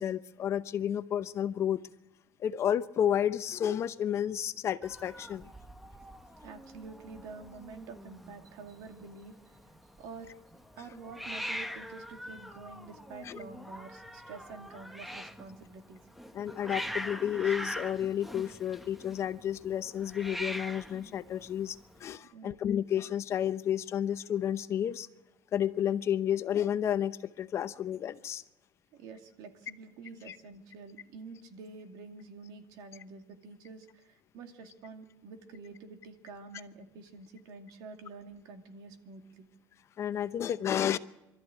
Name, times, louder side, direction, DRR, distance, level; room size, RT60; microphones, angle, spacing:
voice 1, 0.0-1.8 2.4-5.5 13.2-13.4 16.3-25.1 25.5-28.4 30.3-30.4 40.0-41.0, left 10 dB, 40° left, 13 dB, 0.8 m, -31 dB
Hiss, 4.8-22.2, equal, ahead, 0.9 m, -43 dB
voice 2, 6.4-9.6 10.0-10.3 10.8-16.0 22.3-22.6 28.9-39.5, right 4 dB, 70° right, 6 dB, 2.5 m, -48 dB
23.5 x 13.5 x 9.2 m, 1.0 s
cardioid pair, 135°, 7 cm